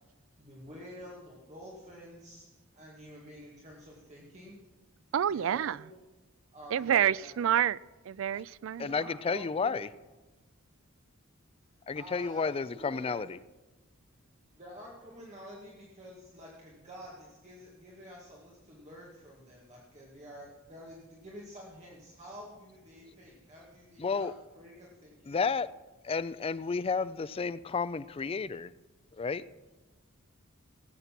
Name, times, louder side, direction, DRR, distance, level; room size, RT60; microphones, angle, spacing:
voice 1, 0.4-2.5 2.7-4.6 5.3-6.0 6.5-7.4 8.8-9.7 10.0-10.1 11.9-13.1 14.5-25.4, equal, 35° right, 2.0 m, -49 dB
voice 2, 5.1-5.8 6.7-7.8 8.1-8.9, right 10 dB, 65° right, 0.3 m, -28 dB
voice 3, 8.8-9.9 11.9-13.3 24.0-24.3 25.3-25.7 26.0-28.7 29.2-29.4, left 5 dB, 25° left, 0.4 m, -31 dB
17.5 x 8.2 x 5.9 m
head